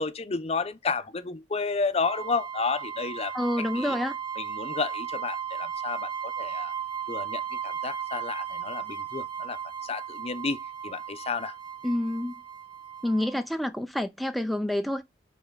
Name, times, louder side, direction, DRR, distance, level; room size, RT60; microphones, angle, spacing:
voice 1, 0.0-3.3 3.7-4.0 4.4-6.7 7.1-11.6, left 4 dB, 35° left, 0.7 m, -31 dB
sound 1, 2.0-13.4, right 8 dB, 25° right, 1.2 m, -36 dB
voice 2, 3.3-4.2 11.8-12.4 13.0-15.0, left 1 dB, ahead, 0.4 m, -28 dB
5.6 x 5.0 x 3.8 m
head